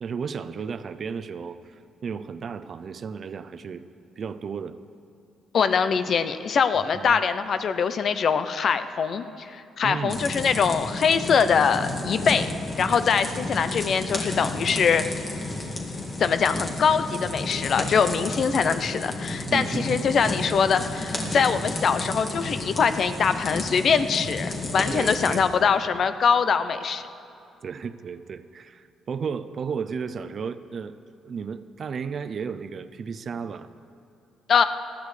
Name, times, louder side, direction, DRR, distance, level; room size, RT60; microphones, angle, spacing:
voice 1, 0.0-3.8 4.2-4.8 6.7-7.2 9.8-10.2 19.5-20.2 21.2-21.5 24.9-25.5 27.6-31.0 31.2-33.7, right 6 dB, 50° right, 13 dB, 0.5 m, -34 dB
voice 2, 5.5-12.5 12.8-15.0 16.2-27.1 34.5-34.6, left 6 dB, 55° left, 11 dB, 0.6 m, -23 dB
sound 1, 10.1-25.4, left 2 dB, 40° left, 2.1 m, -32 dB
19.0 x 13.0 x 3.3 m, 2.6 s
cardioid pair, 90°, 0 cm